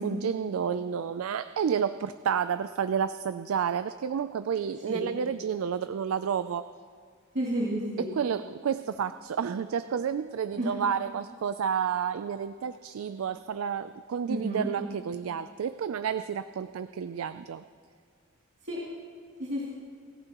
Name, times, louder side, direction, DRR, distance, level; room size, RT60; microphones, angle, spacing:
voice 1, 0.0-6.6 8.0-17.6, right 7 dB, 80° right, 12 dB, 0.4 m, -30 dB
voice 2, 7.3-8.1 10.6-10.7 14.3-14.7 18.7-18.8 19.4-19.6, right 1 dB, 55° right, -7 dB, 2.6 m, -30 dB
30.0 x 11.5 x 3.0 m, 2.1 s
head